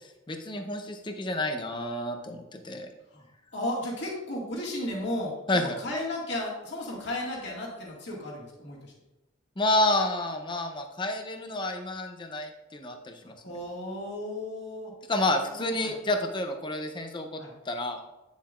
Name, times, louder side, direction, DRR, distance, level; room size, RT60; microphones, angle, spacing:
voice 1, 0.3-2.9 5.5-5.8 9.6-13.3 15.1-18.0, left 1 dB, 25° left, 5 dB, 0.6 m, -29 dB
voice 2, 3.5-8.9 13.2-14.9 15.4-15.9 17.4-17.5, left 1 dB, 55° left, -3 dB, 2.0 m, -34 dB
9.0 x 7.3 x 2.5 m, 0.96 s
head